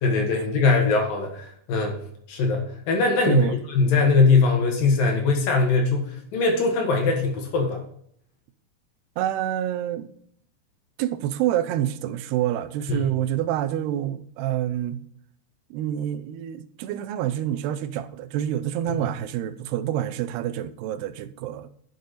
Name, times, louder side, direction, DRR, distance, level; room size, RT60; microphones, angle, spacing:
voice 1, 0.0-2.0 2.3-7.8 12.9-13.1 18.9-19.1, left 4 dB, 65° left, 2.8 m, -21 dB
voice 2, 3.3-3.6 9.2-10.1 11.0-15.0 15.7-21.7, right 11 dB, 85° right, 2.6 m, -27 dB
9.5 x 6.6 x 4.0 m
omnidirectional pair, 4.7 m